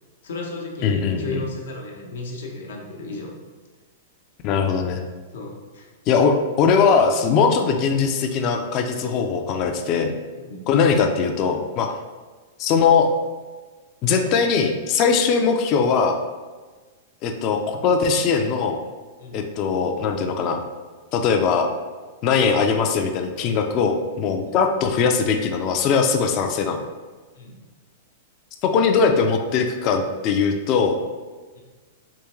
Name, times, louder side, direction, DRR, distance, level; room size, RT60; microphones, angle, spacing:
voice 1, 0.2-3.4 5.3-5.9 10.4-10.6 19.2-19.4 27.4-27.6 31.5-31.6, left 2 dB, 90° left, 0 dB, 0.8 m, -34 dB
voice 2, 0.8-1.4 4.4-5.0 6.1-10.1 10.7-11.9 12.6-13.1 14.0-16.2 17.2-18.8 19.3-20.6 21.1-21.7 22.2-26.8 28.6-31.0, left 5 dB, 35° left, 4 dB, 0.3 m, -20 dB
3.5 x 2.9 x 3.0 m, 1.3 s
supercardioid pair, 160°, 0 cm